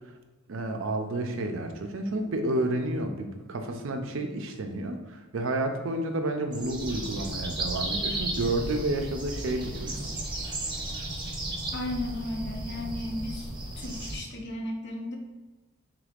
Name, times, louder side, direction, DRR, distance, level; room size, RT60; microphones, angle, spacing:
voice 1, 0.5-10.1, right 2 dB, 65° right, 5 dB, 0.5 m, -30 dB
sound 1, 6.5-14.2, right 2 dB, 20° right, 0.7 m, -34 dB
voice 2, 11.7-13.5 13.8-15.2, left 1 dB, 55° left, 2 dB, 0.6 m, -34 dB
5.1 x 3.4 x 2.4 m, 1.2 s
head